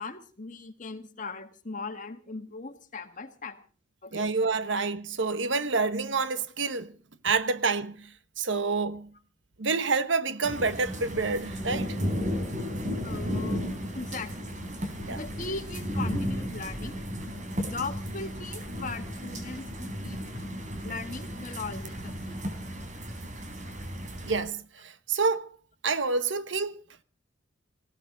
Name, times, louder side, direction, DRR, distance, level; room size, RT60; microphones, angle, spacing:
voice 1, 0.0-3.6 4.0-4.3 13.0-14.5 15.1-17.3 17.6-20.2 20.8-22.4, left 3 dB, 45° left, 1.8 m, -39 dB
voice 2, 4.1-6.9 7.2-9.1 9.6-12.0 15.0-15.2 24.2-25.5 25.8-26.8, right 4 dB, 80° right, 1.2 m, -28 dB
sound 1, 10.4-24.4, equal, 40° right, 3.9 m, -34 dB
19.5 x 16.5 x 3.9 m
head